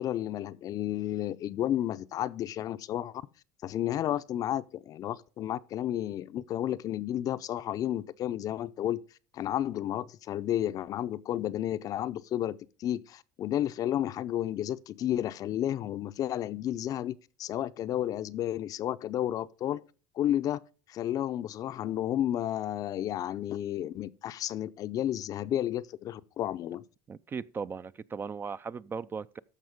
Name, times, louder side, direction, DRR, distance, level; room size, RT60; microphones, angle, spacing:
voice 1, 0.0-3.2 3.6-9.0 9.3-19.8 20.2-20.6 20.9-26.8, left 12 dB, 50° left, 0.5 m, -32 dB
voice 2, 27.1-29.4, right 5 dB, 25° right, 0.4 m, -37 dB
14.0 x 5.2 x 5.1 m
supercardioid pair, 95°, 8 cm